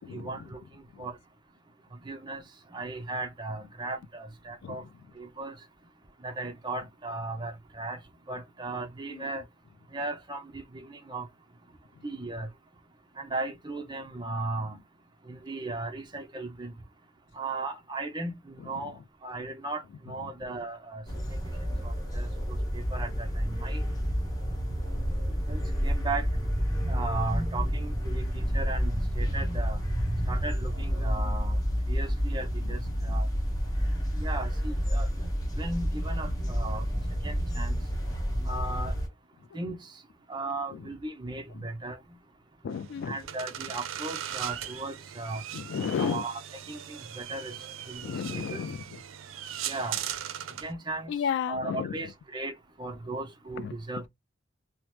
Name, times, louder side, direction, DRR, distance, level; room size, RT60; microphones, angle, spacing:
voice 1, 0.1-0.6 1.0-1.2 2.0-2.4 2.7-4.8 5.2-5.5 6.2-8.0 8.3-9.4 9.9-11.3 12.0-12.5 13.2-14.8 15.3-16.7 17.4-21.0 21.3-21.4 21.8-22.3 22.7-23.8 25.5-26.3 26.9-29.8 30.3-31.6 31.9-33.3 34.2-35.1 35.6-36.8 37.2-37.8 38.5-38.9 39.5-39.8 40.3-42.0 43.1-45.4 46.0-46.4 46.7-47.5 47.9-48.6 49.7-50.0 50.6-51.1 51.5-52.5 52.8-54.1, right 2 dB, 25° right, 0.6 m, -36 dB
sound 1, 21.1-39.1, equal, 20° left, 0.9 m, -29 dB
voice 2, 42.6-43.2 45.5-46.2 48.0-49.0 51.1-52.0 53.6-53.7, left 7 dB, 65° left, 0.3 m, -33 dB
sound 2, 42.7-50.7, right 10 dB, 85° right, 0.4 m, -39 dB
2.9 x 2.0 x 3.1 m
head